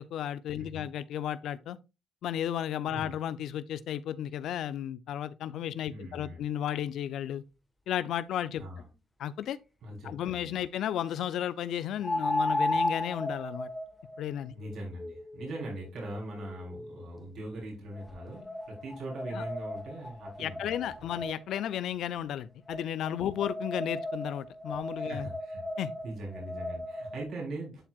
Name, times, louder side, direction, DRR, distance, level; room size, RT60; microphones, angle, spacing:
voice 1, 0.0-1.8 2.2-7.4 7.9-8.6 9.2-9.6 10.0-13.7 14.2-14.5 19.3-19.4 20.4-25.3 25.8-25.9, left 10 dB, 75° left, 0.4 m, -33 dB
voice 2, 0.5-0.8 2.9-3.1 5.9-6.4 8.6-8.9 9.8-10.5 14.5-21.2 25.0-25.6 26.0-27.8, right 1 dB, 70° right, 3.5 m, -41 dB
sound 1, 9.4-9.5 12.0-17.2 17.9-21.6 22.7-27.2, left 1 dB, 15° left, 1.3 m, -35 dB
11.0 x 4.6 x 2.3 m
cardioid pair, 90°, 0 cm